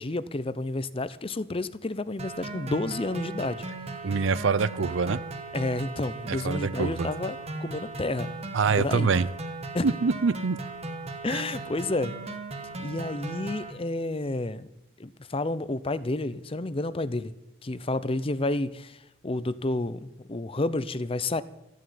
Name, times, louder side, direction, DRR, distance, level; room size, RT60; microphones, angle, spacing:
voice 1, 0.0-3.6 5.5-8.3 8.8-9.1 9.7-9.9 11.2-12.1 12.8-14.7 15.0-17.3 17.6-19.0 19.2-21.4, left 2 dB, 30° left, 15 dB, 0.6 m, -30 dB
sound 1, 2.2-13.7, right 2 dB, 30° right, 1.6 m, -37 dB
voice 2, 4.0-5.2 6.3-7.1 8.5-9.3 9.8-10.6 11.3-11.4, right 5 dB, 70° right, 19 dB, 0.5 m, -25 dB
13.5 x 9.0 x 9.4 m, 0.91 s
head